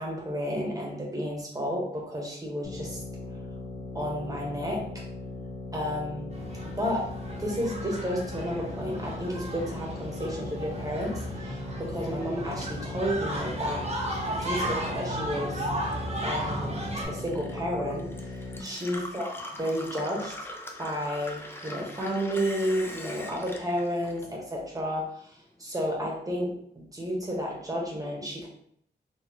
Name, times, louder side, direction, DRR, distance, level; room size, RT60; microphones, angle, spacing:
voice 1, 0.0-3.0 3.9-4.8 5.7-6.3 6.8-13.9 14.3-15.7 16.2-16.8 17.1-19.3 19.6-20.5 20.8-28.5, equal, 20° right, -2 dB, 1.2 m, -32 dB
sound 1, 2.6-18.6, left 2 dB, 60° left, 1.6 m, -39 dB
sound 2, 6.3-17.0, right 1 dB, 35° right, 1.0 m, -35 dB
Gurgling / Water tap faucet / Sink (filling or washing), 15.2-24.8 25.1-25.9, left 1 dB, 15° left, 0.6 m, -42 dB
4.2 x 2.7 x 2.9 m, 0.67 s
wide cardioid pair, 90°, 18 cm